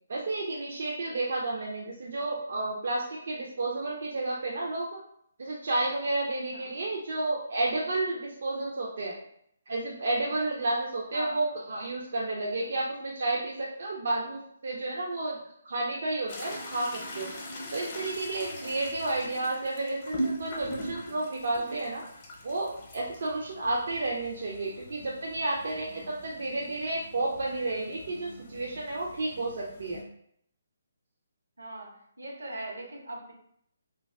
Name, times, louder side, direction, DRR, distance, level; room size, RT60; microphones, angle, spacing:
voice 1, 0.1-5.0 5.4-9.2 9.7-15.4 15.6-17.3 17.7-22.0 22.4-30.0, right 2 dB, 65° right, -3 dB, 0.4 m, -31 dB
voice 2, 11.1-11.6 12.6-12.7 31.6-31.9 32.2-33.3, right 1 dB, 85° right, 0 dB, 0.8 m, -40 dB
sound 1, 16.3-30.0, equal, 35° left, 0.7 m, -41 dB
2.2 x 2.2 x 3.4 m, 0.69 s
hypercardioid pair, 155°, 0 cm